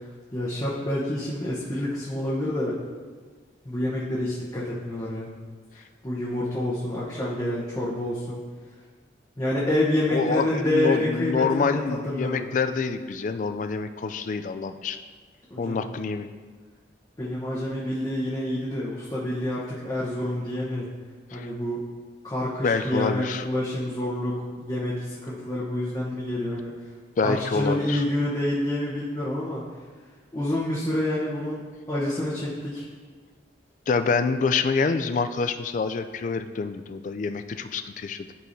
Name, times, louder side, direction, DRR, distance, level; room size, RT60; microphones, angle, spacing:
voice 1, 0.3-2.8 3.6-5.3 6.0-8.4 9.4-12.5 15.5-15.8 17.2-20.9 21.3-21.8 22.2-26.7 27.2-29.6 30.3-32.8, left 1 dB, 20° left, -8 dB, 0.9 m, -28 dB
voice 2, 10.1-15.0 15.6-16.3 21.3-21.5 22.6-23.4 27.2-28.0 33.9-38.3, left 4 dB, 45° left, 10 dB, 0.3 m, -26 dB
11.5 x 4.6 x 2.7 m, 1.5 s
head